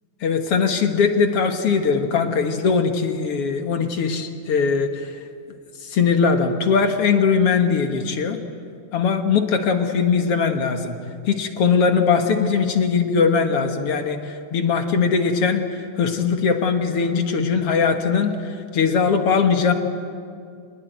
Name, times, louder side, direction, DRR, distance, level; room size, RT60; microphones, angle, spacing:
voice 1, 0.2-5.1 5.8-8.4 8.9-11.0 11.3-19.7, left 5 dB, 55° left, 6 dB, 2.1 m, -20 dB
25.0 x 20.5 x 9.3 m, 2.3 s
omnidirectional pair, 3.6 m